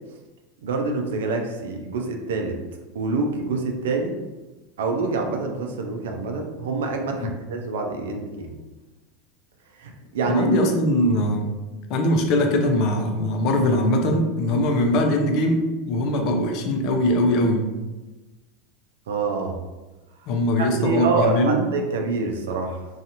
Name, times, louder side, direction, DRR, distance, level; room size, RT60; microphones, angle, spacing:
voice 1, 0.6-2.6 2.9-4.2 4.8-8.5 9.8-10.5 19.1-19.6 20.6-22.9, right 3 dB, 85° right, 3 dB, 0.4 m, -26 dB
voice 2, 10.2-11.5 11.9-17.7 20.3-21.6, left 1 dB, 55° left, 3 dB, 0.5 m, -21 dB
2.6 x 2.3 x 2.8 m, 1.1 s
hypercardioid pair, 100°, 0 cm